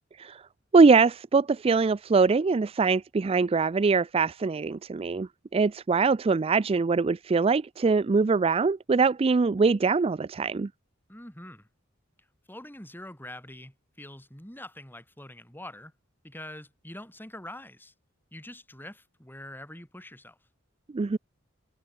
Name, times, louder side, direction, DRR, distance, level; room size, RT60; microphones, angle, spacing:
voice 1, 0.7-10.7 20.9-21.2, right 4 dB, 30° right, 0.4 m, -23 dB
voice 2, 11.1-11.7 12.5-15.9 16.2-17.9 18.3-20.4, left 1 dB, 10° left, 5.0 m, -44 dB
head